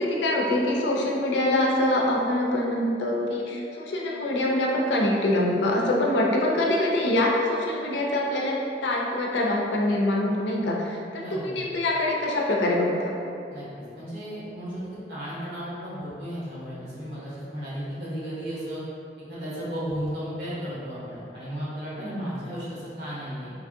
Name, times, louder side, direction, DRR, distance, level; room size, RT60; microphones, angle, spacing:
voice 1, 0.0-8.6 8.8-13.1 22.0-22.2, left 1 dB, 85° left, -2 dB, 0.4 m, -24 dB
voice 2, 11.2-11.6 13.5-18.8 19.3-23.5, equal, 65° right, -9 dB, 1.0 m, -34 dB
3.1 x 2.5 x 2.5 m, 2.6 s
head